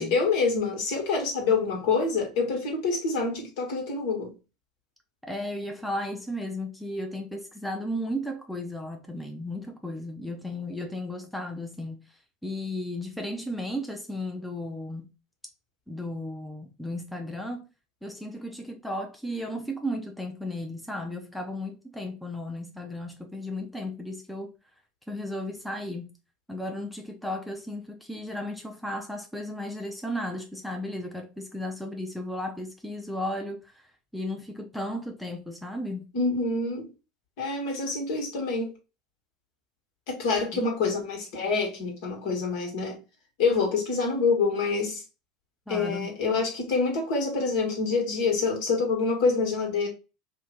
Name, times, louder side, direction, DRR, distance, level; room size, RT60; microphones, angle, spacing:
voice 1, 0.0-4.3 36.1-36.9 37.4-38.7 40.1-43.0 43.4-45.0 45.7-49.9, left 4 dB, 65° left, 1.2 m, -26 dB
voice 2, 5.2-12.0 12.4-15.1 15.9-17.6 18.0-24.5 25.1-26.1 26.5-33.8 34.1-36.1 45.7-46.1, left 1 dB, 5° left, 0.6 m, -34 dB
2.6 x 2.2 x 3.6 m
hypercardioid pair, 80°, 0 cm